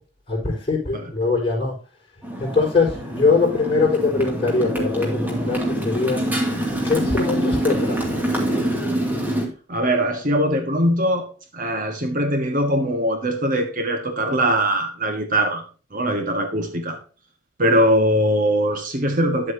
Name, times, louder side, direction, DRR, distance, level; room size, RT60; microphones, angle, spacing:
voice 1, 0.3-1.7 2.4-6.2 6.8-8.1, left 4 dB, 25° left, -3 dB, 4.6 m, -22 dB
Motorcycle, 2.2-9.5, right 1 dB, 10° right, 2.3 m, -25 dB
voice 2, 9.7-11.3 11.5-15.6 15.9-17.0 17.6-19.5, equal, 45° right, 6 dB, 1.3 m, -21 dB
10.5 x 8.0 x 2.8 m, 0.37 s
head